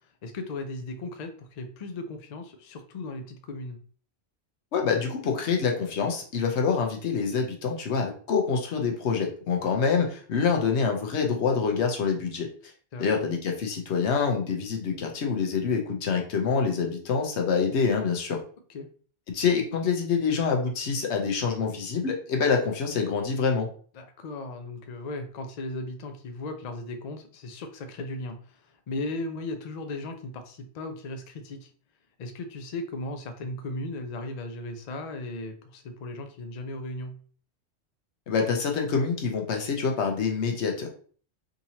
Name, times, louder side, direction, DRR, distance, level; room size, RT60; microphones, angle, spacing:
voice 1, 0.2-3.8 12.9-13.3 18.7-18.9 23.9-31.7 32.2-37.2, left 2 dB, 50° left, 6 dB, 0.5 m, -37 dB
voice 2, 4.7-12.5 13.0-18.4 19.3-23.7 38.3-40.9, left 5 dB, 80° left, 3 dB, 1.0 m, -26 dB
3.7 x 2.8 x 2.8 m, 0.44 s
omnidirectional pair, 1.1 m